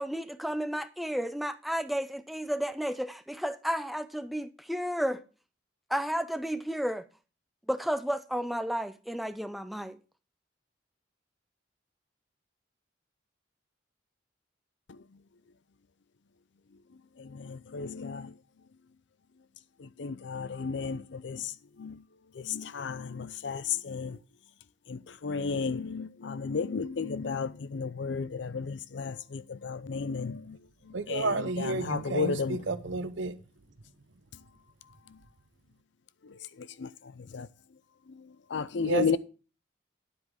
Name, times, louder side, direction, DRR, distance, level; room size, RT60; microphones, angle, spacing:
voice 1, 0.0-5.2 5.9-7.1 7.7-10.0, equal, ahead, 0.5 m, -32 dB
voice 2, 17.7-18.2 20.0-21.4 21.8-21.9 22.5-23.6 23.9-24.1 24.9-25.0 25.2-30.4 31.1-32.6 37.3-37.5 38.5-39.2, left 5 dB, 70° left, 0.5 m, -32 dB
voice 3, 30.9-33.3 38.8-39.2, right 4 dB, 80° right, 0.8 m, -31 dB
9.7 x 8.0 x 3.6 m
head